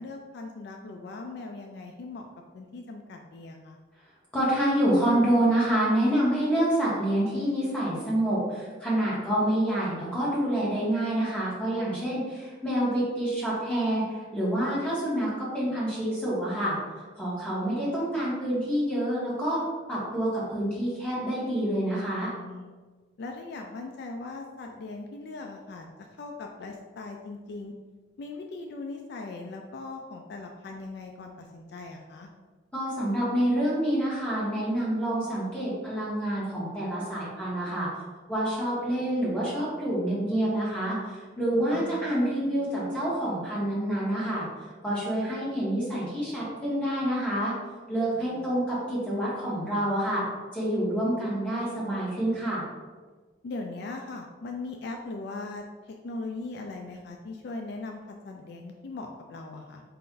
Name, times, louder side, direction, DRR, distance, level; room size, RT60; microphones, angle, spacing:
voice 1, 0.0-2.3 2.5-3.8 22.1-22.7 23.2-25.9 26.1-27.7 28.2-32.3 41.5-42.0 48.2-48.5 53.4-59.8, left 3 dB, 60° left, 2 dB, 0.3 m, -39 dB
voice 2, 4.3-14.0 14.3-16.8 17.2-19.6 19.9-22.3 32.7-37.9 38.3-41.0 41.4-44.5 44.8-47.5 47.9-50.2 50.5-52.6, right 1 dB, 5° left, -8 dB, 1.4 m, -27 dB
4.3 x 2.5 x 3.7 m, 1.4 s
head